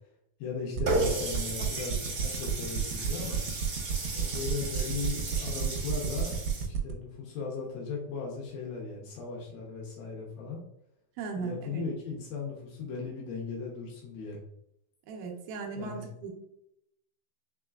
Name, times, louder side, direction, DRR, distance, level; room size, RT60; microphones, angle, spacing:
voice 1, 0.4-3.4 4.1-6.4 6.7-10.6 11.3-14.4 15.7-16.1, left 4 dB, 80° left, -2 dB, 2.6 m, -37 dB
sound 1, 0.8-6.9, right 6 dB, 90° right, 2.5 m, -32 dB
Water tap faucet, 0.9-6.6, right 3 dB, 50° right, 1.7 m, -34 dB
voice 2, 11.2-11.9 15.1-16.3, right 4 dB, 75° right, 1 dB, 2.2 m, -37 dB
6.0 x 3.1 x 2.3 m, 0.79 s
omnidirectional pair, 4.3 m